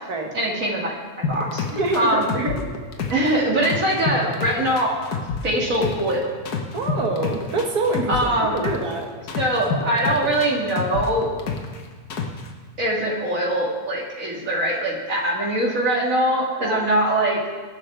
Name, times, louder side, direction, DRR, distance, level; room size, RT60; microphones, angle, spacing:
voice 1, 0.3-1.6 2.0-2.3 3.1-5.0 5.4-6.4 8.1-8.6 9.4-11.3 12.8-17.4, right 1 dB, 60° right, -3 dB, 2.8 m, -22 dB
sound 1, 1.2-3.3 3.6-6.1 6.5-8.9 9.3-11.8 12.1-12.5, left 5 dB, 90° left, 1.8 m, -27 dB
voice 2, 1.7-2.6 6.7-9.1 16.6-16.8, right 2 dB, 85° right, 2 dB, 2.2 m, -25 dB
20.5 x 12.0 x 3.5 m, 1.5 s
omnidirectional pair, 1.6 m